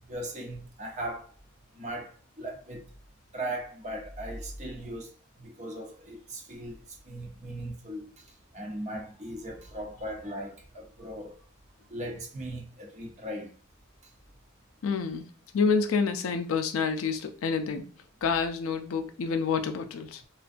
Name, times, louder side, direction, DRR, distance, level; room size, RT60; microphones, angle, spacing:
voice 1, 0.1-1.3 1.7-2.8 3.3-5.1 5.4-8.2 8.5-11.4 11.9-13.5, right 1 dB, 35° right, 0.7 m, -38 dB
voice 2, 14.8-15.3 15.5-17.8 18.2-20.2, left 5 dB, 70° left, 0.4 m, -28 dB
2.5 x 2.2 x 2.5 m
head